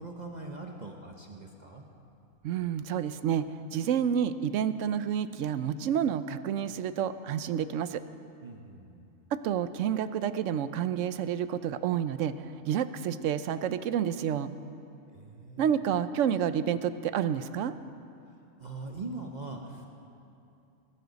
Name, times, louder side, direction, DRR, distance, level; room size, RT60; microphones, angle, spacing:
voice 1, 0.0-1.8 8.4-9.1 15.1-15.7 18.6-19.9, right 3 dB, 40° right, 1 dB, 0.9 m, -41 dB
voice 2, 2.4-8.0 9.3-14.5 15.6-17.7, right 9 dB, 75° right, 13 dB, 0.9 m, -29 dB
20.0 x 12.5 x 4.0 m, 2.6 s
omnidirectional pair, 1.4 m